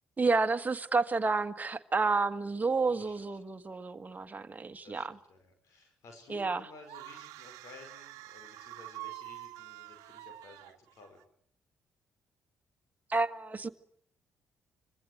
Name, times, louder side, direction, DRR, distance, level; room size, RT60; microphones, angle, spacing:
voice 1, 0.2-5.2 6.3-6.7 13.1-13.7, right 3 dB, 25° right, 1.7 m, -30 dB
voice 2, 2.8-3.4 4.8-11.2, left 3 dB, 65° left, 5.0 m, -55 dB
sound 1, 6.8-11.2, right 17 dB, 70° right, 1.2 m, -47 dB
26.0 x 23.0 x 8.0 m
hypercardioid pair, 45°, 6 cm